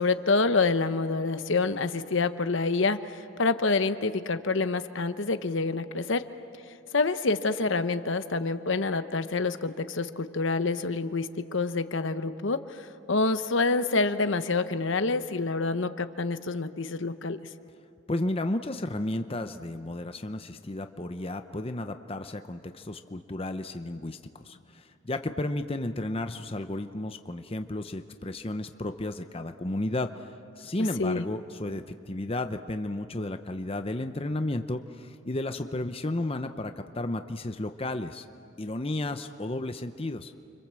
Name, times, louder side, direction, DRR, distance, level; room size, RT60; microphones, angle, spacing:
voice 1, 0.0-6.3 6.9-17.4 31.0-31.2, left 3 dB, 60° left, 11 dB, 0.9 m, -27 dB
voice 2, 18.1-30.3 30.6-38.3 38.6-40.3, left 1 dB, 25° left, 8 dB, 0.7 m, -33 dB
29.5 x 25.5 x 7.6 m, 2.5 s
head